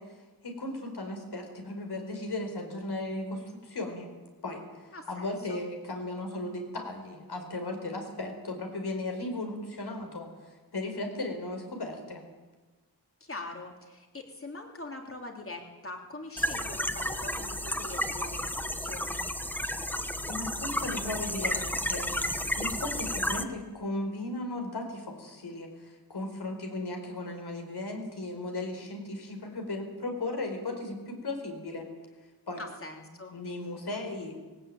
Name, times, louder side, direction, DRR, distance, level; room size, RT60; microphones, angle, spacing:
voice 1, 0.0-4.1 4.4-12.2 20.3-22.1 22.6-31.9 32.5-32.6 33.3-34.4, left 2 dB, 70° left, 4 dB, 4.7 m, -36 dB
voice 2, 4.9-5.6 13.2-19.2 32.6-33.4, left 2 dB, 30° left, 2 dB, 3.2 m, -43 dB
sound 1, 16.4-23.4, left 1 dB, 5° left, 1.0 m, -32 dB
20.0 x 17.5 x 8.9 m, 1.3 s
wide cardioid pair, 135°, 41 cm